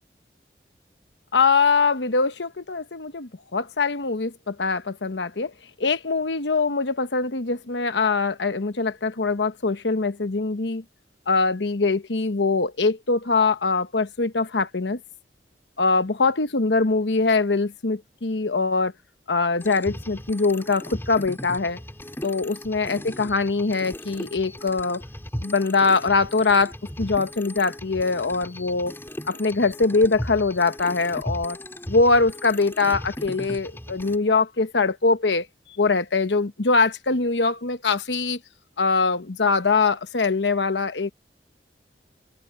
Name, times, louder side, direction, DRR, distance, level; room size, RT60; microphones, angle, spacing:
voice 1, 1.3-5.5 5.8-10.8 11.3-15.0 15.8-18.9 19.3-21.8 22.2-25.0 25.4-29.0 29.3-31.6 31.9-35.5 35.8-38.4 38.8-41.1, left 4 dB, 90° left, 1.1 m, -23 dB
sound 1, 19.6-34.2, equal, 15° left, 4.0 m, -37 dB
head